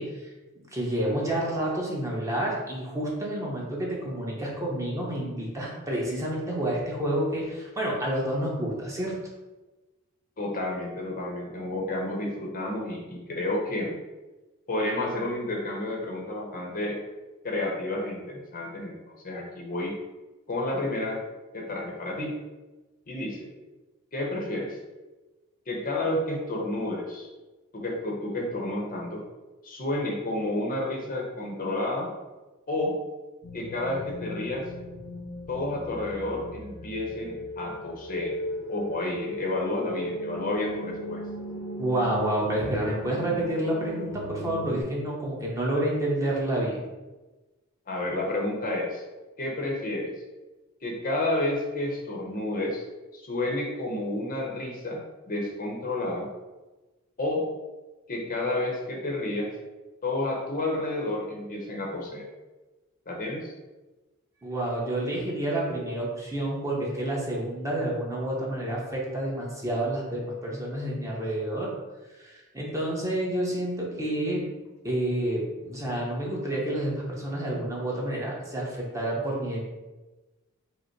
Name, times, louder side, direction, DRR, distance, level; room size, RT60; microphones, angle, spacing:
voice 1, 0.0-9.1 41.8-46.8 64.4-71.7 72.2-74.5 74.8-79.6, right 1 dB, 15° right, -4 dB, 0.8 m, -29 dB
voice 2, 10.4-14.0 14.7-17.0 17.4-19.9 20.5-21.2 21.5-22.4 23.1-23.5 24.1-24.8 25.7-27.3 27.7-29.2 29.6-32.1 32.7-32.9 33.5-34.7 35.5-38.4 38.7-41.2 47.9-49.0 49.4-50.1 50.8-52.8 53.1-56.3 57.2-57.5 58.1-59.5 60.0-62.2 63.1-63.5, left 2 dB, 40° left, -1 dB, 0.8 m, -30 dB
sound 1, 33.4-44.8, equal, 70° left, 0.8 m, -38 dB
5.1 x 2.1 x 4.5 m, 1.2 s
head